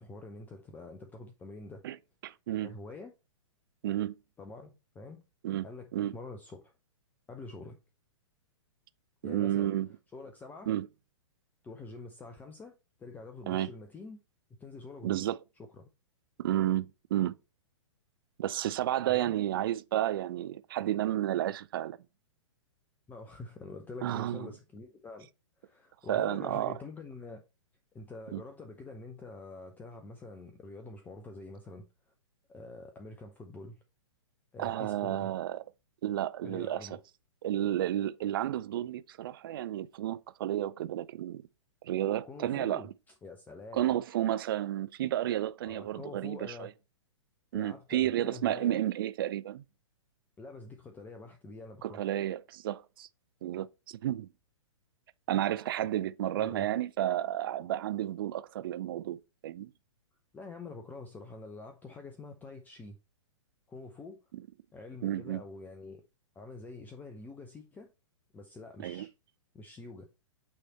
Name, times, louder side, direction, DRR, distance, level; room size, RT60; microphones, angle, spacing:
voice 1, 0.0-1.8 2.6-3.1 4.4-5.2 5.6-6.7 7.3-7.8 9.2-9.7 10.1-10.7 11.6-14.2 14.6-15.3 15.6-15.9 19.1-19.3 23.1-25.3 25.6-27.4 27.9-31.9 32.5-33.8 34.5-35.3 36.4-37.0 42.2-42.9 43.2-44.0 45.6-46.7 47.5-48.8 50.4-52.1 56.3-56.7 60.3-63.0 63.7-64.2 64.7-66.0 66.3-67.9 68.3-69.1 69.5-70.1, left 3 dB, 10° left, 0.7 m, -46 dB
voice 2, 2.2-2.7 3.8-4.1 5.4-5.6 5.9-6.1 9.2-9.9 10.7-10.9 13.5-13.7 15.0-15.4 16.4-17.3 18.4-22.0 24.0-24.5 26.1-26.8 28.3-28.4 34.6-35.6 36.0-36.9 37.4-41.4 41.8-42.8 43.7-46.7 47.5-49.6 51.8-53.1 53.4-54.3 55.3-59.7 64.3-64.4 65.0-65.4 68.8-69.1, right 12 dB, 45° right, 0.5 m, -31 dB
8.6 x 3.2 x 4.2 m
figure-of-eight pair, 115°, 16 cm